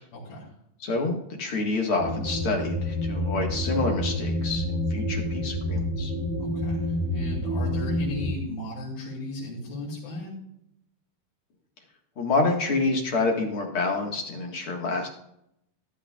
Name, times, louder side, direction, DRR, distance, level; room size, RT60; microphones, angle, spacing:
voice 1, 0.1-0.5 6.4-10.3, left 1 dB, 80° left, -7 dB, 4.6 m, -36 dB
voice 2, 0.8-6.1 12.2-15.1, left 3 dB, 45° left, 1 dB, 2.0 m, -27 dB
sound 1, 2.0-8.3, left 1 dB, 55° right, 2.9 m, -28 dB
14.0 x 11.5 x 2.4 m, 0.75 s
omnidirectional pair, 4.2 m